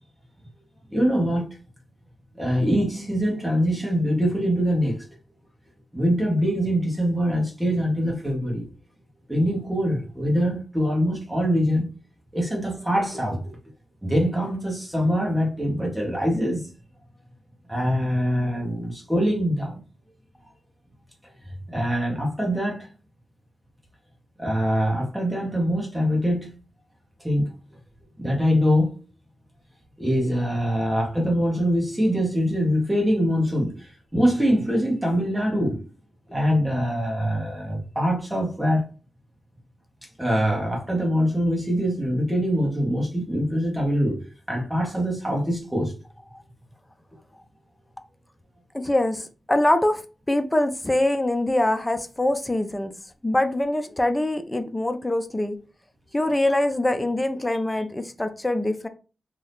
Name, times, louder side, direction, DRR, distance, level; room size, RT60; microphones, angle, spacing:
voice 1, 0.9-1.6 2.3-5.0 5.9-8.7 9.3-11.9 12.3-13.6 14.0-16.7 17.7-19.8 21.7-22.9 24.4-26.5 27.2-27.5 28.2-29.0 30.0-35.9 36.3-38.9 40.2-45.9 56.4-56.5, equal, 5° right, 1.1 m, -23 dB
voice 2, 48.7-50.0 50.3-52.9 53.2-55.6 56.1-58.9, left 1 dB, 10° left, 0.4 m, -24 dB
2.7 x 2.7 x 3.4 m
wide cardioid pair, 155°, 0 cm